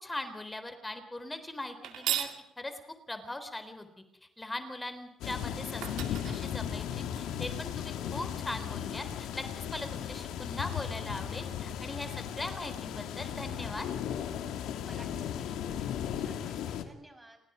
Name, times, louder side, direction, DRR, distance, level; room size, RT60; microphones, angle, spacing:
voice 1, 0.0-2.3 2.6-2.7 3.1-3.9 4.4-9.4 9.7-13.9, left 2 dB, 15° left, 9 dB, 3.8 m, -40 dB
sound 1, 1.8-2.4 5.3-5.4 5.8-7.2, right 11 dB, 90° right, 2.3 m, -35 dB
sound 2, 5.2-16.8, left 9 dB, 90° left, 2.4 m, -36 dB
voice 2, 14.8-15.9 16.2-17.4, right 1 dB, 15° right, 5 dB, 6.7 m, -54 dB
29.0 x 19.5 x 5.1 m, 0.84 s
cardioid pair, 90°, 0 cm